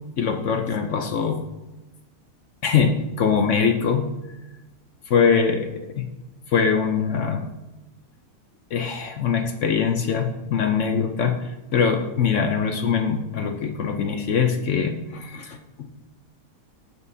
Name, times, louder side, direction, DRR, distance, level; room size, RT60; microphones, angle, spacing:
voice 1, 0.2-1.4 2.6-4.1 5.1-6.1 6.5-7.5 8.7-11.4 11.7-15.9, left 6 dB, 60° left, 5 dB, 0.9 m, -22 dB
15.0 x 5.4 x 2.7 m, 1.1 s
omnidirectional pair, 1.8 m